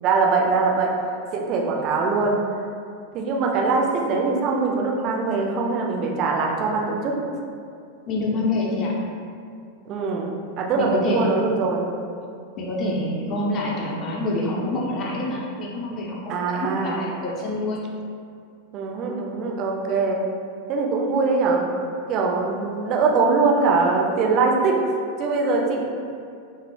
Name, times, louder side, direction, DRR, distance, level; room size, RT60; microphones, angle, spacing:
voice 1, 0.0-0.9 1.3-2.4 3.1-7.2 9.9-10.3 10.6-11.8 16.3-17.1 18.7-20.2 20.7-21.6 22.1-24.8 25.2-25.8, right 4 dB, 40° right, 0 dB, 0.3 m, -22 dB
voice 2, 8.1-8.9 10.8-11.3 12.6-17.9, left 2 dB, 35° left, -3 dB, 0.5 m, -26 dB
2.1 x 2.0 x 3.0 m, 2.4 s
figure-of-eight pair, 90°, 0 cm